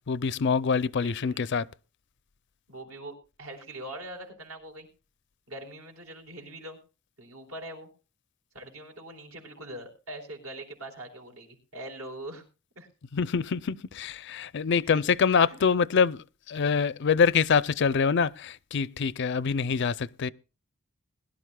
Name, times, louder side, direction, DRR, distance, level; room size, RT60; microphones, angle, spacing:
voice 1, 0.1-1.6 13.1-20.3, left 6 dB, 55° left, 0.5 m, -25 dB
voice 2, 1.0-1.7 2.7-4.9 5.5-6.8 7.2-7.9 8.5-12.4 12.7-12.9 14.9-15.0 15.5-15.6, right 1 dB, 85° right, 4.0 m, -42 dB
21.0 x 11.5 x 2.2 m
head